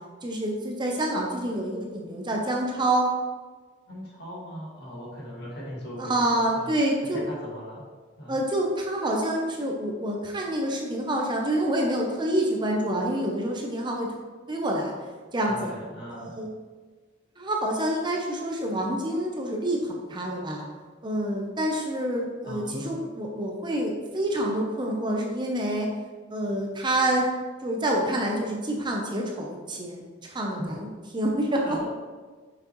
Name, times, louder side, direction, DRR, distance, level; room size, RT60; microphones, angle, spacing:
voice 1, 0.2-3.1 6.0-7.2 8.3-14.1 14.5-15.6 16.2-16.5 17.4-20.6 21.0-25.9 26.3-27.3 27.6-30.9 31.1-31.6, right 1 dB, 25° right, 0 dB, 0.7 m, -27 dB
voice 2, 3.9-6.7 7.1-7.9 8.2-8.4 15.4-16.3 22.4-23.0 30.6-30.8 31.6-31.8, equal, 55° left, -5 dB, 2.0 m, -38 dB
6.3 x 5.9 x 3.1 m, 1.4 s
head